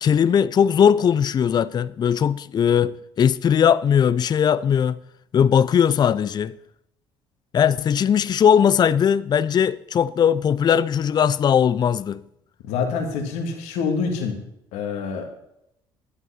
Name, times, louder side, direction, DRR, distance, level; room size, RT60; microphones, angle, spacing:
voice 1, 0.0-5.0 5.3-6.5 7.5-12.2, left 8 dB, 35° left, 0.4 m, -19 dB
voice 2, 12.7-14.4 14.7-15.3, left 5 dB, 70° left, 1.9 m, -26 dB
11.0 x 8.1 x 5.8 m
hypercardioid pair, 65°, 12 cm